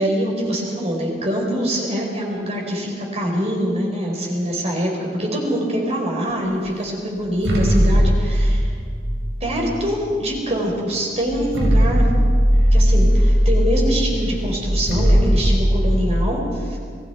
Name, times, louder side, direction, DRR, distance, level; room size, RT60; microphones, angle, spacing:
voice 1, 0.0-8.7 9.4-12.1 12.7-16.8, equal, 35° right, 0 dB, 4.8 m, -24 dB
sound 1, 7.3-10.1 10.8-10.9 11.3-16.2, equal, 85° right, 4.9 m, -18 dB
28.5 x 20.0 x 4.6 m, 2.1 s
head